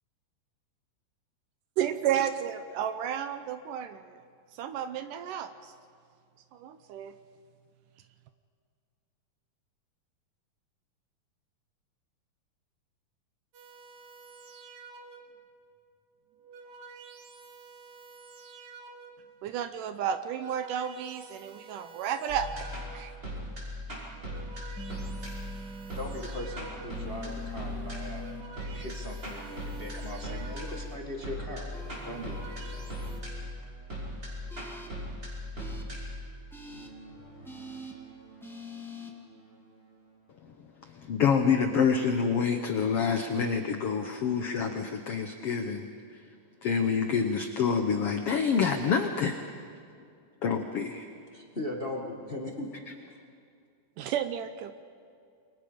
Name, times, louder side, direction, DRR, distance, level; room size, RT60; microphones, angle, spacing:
voice 1, 1.8-4.0 4.6-5.7 6.5-7.1 19.4-22.5 22.9-23.1 54.0-54.7, right 9 dB, 75° right, 10 dB, 2.1 m, -32 dB
sound 1, 13.5-15.5 16.2-19.4 20.1-23.3 24.0-27.2 27.9-31.1 31.8-33.2, right 4 dB, 55° right, 3.0 m, -50 dB
sound 2, 22.3-39.4, equal, 20° right, 6.0 m, -39 dB
sound 3, 24.7-26.0 26.9-28.4 29.3-31.0 31.7-33.1 34.5-34.9 35.6-35.8 36.5-36.9 37.4-37.9 38.4-39.1, left 2 dB, ahead, 0.8 m, -45 dB
voice 2, 25.9-28.2 28.6-31.7 32.0-32.4 51.3-52.8, left 1 dB, 25° left, 0 dB, 1.2 m, -39 dB
voice 3, 41.0-45.9 46.6-49.4 50.4-51.1, left 6 dB, 85° left, 6 dB, 1.3 m, -27 dB
29.0 x 23.5 x 5.1 m, 2.4 s
omnidirectional pair, 4.2 m